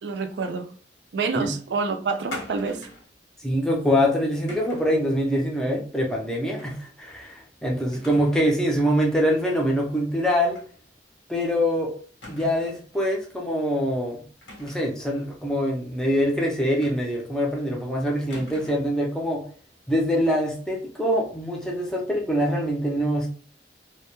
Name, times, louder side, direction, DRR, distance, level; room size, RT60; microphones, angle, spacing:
voice 1, 0.0-0.7 1.1-2.9, right 4 dB, 75° right, 0.4 m, -27 dB
sound 1, 2.3-3.1 4.5-4.9 6.6-6.9 7.3-7.4 7.9-8.5 8.8-8.9 10.5-10.7 11.1-11.2 12.2-12.8 14.4-15.0 16.8-17.4 18.3-19.0, left 1 dB, 85° left, 0.9 m, -42 dB
voice 2, 3.4-10.6 11.3-11.9 12.3-14.2 14.6-19.4 19.9-23.3, equal, 5° left, 0.5 m, -24 dB
2.1 x 2.0 x 2.9 m
head